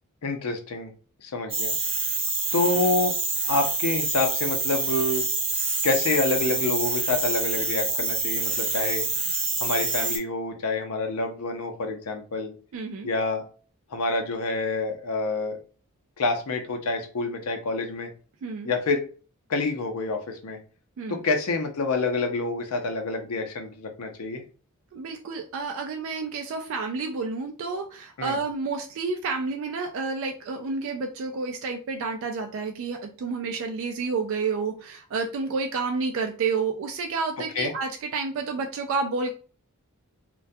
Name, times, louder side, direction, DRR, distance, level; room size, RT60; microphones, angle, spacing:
voice 1, 0.2-0.9 1.2-1.7 2.5-3.1 3.5-5.2 5.8-9.1 9.6-12.5 13.0-13.4 13.9-15.6 16.2-18.1 18.6-19.1 19.5-20.6 21.1-24.4 28.2-28.4 37.5-37.7, left 3 dB, 80° left, 4 dB, 0.5 m, -27 dB
sound 1, 1.5-10.2, right 3 dB, 25° right, 0.6 m, -27 dB
voice 2, 12.7-13.1 18.4-18.7 21.0-21.2 24.9-39.3, right 4 dB, 60° right, 4 dB, 0.3 m, -30 dB
2.2 x 2.1 x 2.6 m, 0.39 s
head